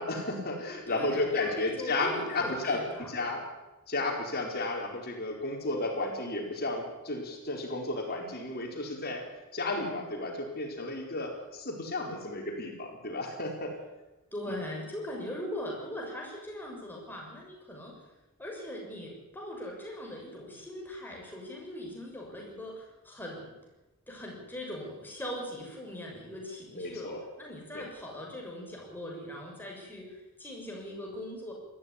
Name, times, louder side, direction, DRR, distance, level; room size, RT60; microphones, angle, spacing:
voice 1, 0.0-3.4 3.9-9.3 9.5-13.8 14.5-14.6 26.7-27.2 27.7-27.8, left 2 dB, 45° left, 2 dB, 4.5 m, -33 dB
voice 2, 0.9-3.1 14.3-17.9 18.4-23.5 24.1-27.1 27.4-31.5, left 1 dB, 10° left, -1 dB, 6.5 m, -40 dB
20.0 x 14.0 x 10.0 m, 1.1 s
head